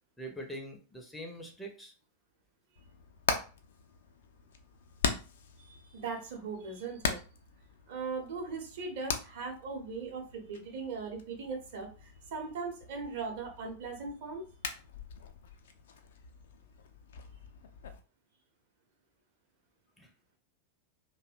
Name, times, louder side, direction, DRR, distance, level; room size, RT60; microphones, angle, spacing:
voice 1, 0.2-1.9 20.0-20.1, right 1 dB, 5° left, 2 dB, 0.5 m, -43 dB
Hammer, 2.8-18.0, left 6 dB, 60° left, 0.3 m, -41 dB
voice 2, 5.6-7.2 7.9-14.4, right 4 dB, 55° right, 2 dB, 0.7 m, -39 dB
2.6 x 2.1 x 2.4 m, 0.35 s
figure-of-eight pair, 90°, 0 cm